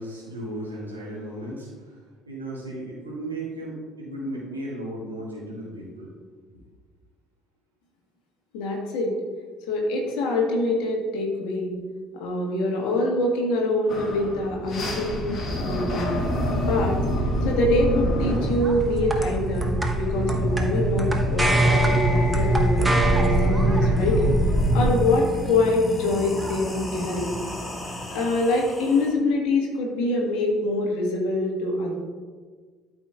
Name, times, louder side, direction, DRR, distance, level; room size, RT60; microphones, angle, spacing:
voice 1, 0.0-6.1 6.5-6.6 29.9-30.2, right 1 dB, 90° right, -5 dB, 2.0 m, -35 dB
voice 2, 8.5-9.1 9.7-11.7 12.2-16.1 16.7-17.0 17.4-22.9 23.1-24.3 24.7-27.3 28.1-31.9, left 2 dB, 65° left, -1 dB, 1.6 m, -25 dB
sound 1, 13.9-24.9, right 1 dB, 45° left, 1.9 m, -24 dB
sound 2, 18.2-28.2, right 1 dB, 15° right, 1.0 m, -29 dB
sound 3, 23.4-23.5 23.8-29.1, left 1 dB, 15° left, 1.7 m, -36 dB
12.5 x 5.2 x 2.4 m, 1.5 s
figure-of-eight pair, 55°, 0 cm